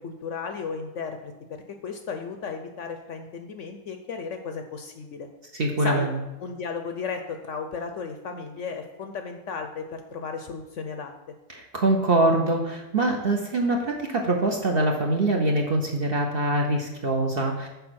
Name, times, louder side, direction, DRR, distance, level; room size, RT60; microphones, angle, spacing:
voice 1, 0.0-1.3 1.8-5.3 5.8-6.1 6.4-11.1, left 5 dB, 65° left, 6 dB, 0.8 m, -34 dB
voice 2, 5.5-6.1 11.5-17.7, right 2 dB, 50° right, 1 dB, 0.8 m, -24 dB
6.9 x 5.0 x 6.2 m, 1.0 s
omnidirectional pair, 1.7 m